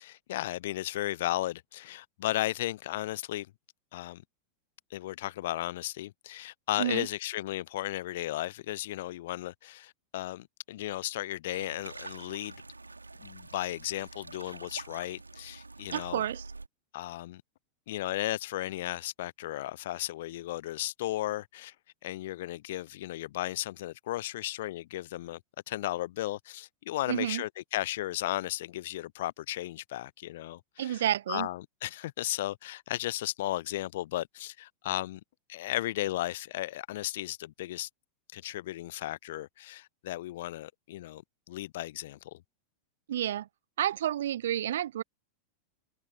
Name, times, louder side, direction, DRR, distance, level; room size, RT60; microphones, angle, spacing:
voice 1, 0.0-3.5 3.9-4.2 4.9-12.5 13.2-16.2 16.9-17.4 17.9-21.7 22.0-25.4 25.7-35.2 35.5-37.9 38.3-42.4, left 15 dB, 55° left, 0.7 m, -35 dB
sound 1, 11.5-16.7, right 3 dB, 80° right, 3.9 m, -46 dB
voice 2, 15.9-16.4 27.1-27.4 30.8-31.5 43.1-43.5 43.8-45.0, right 11 dB, 60° right, 0.6 m, -30 dB
figure-of-eight pair, 90°, 0 cm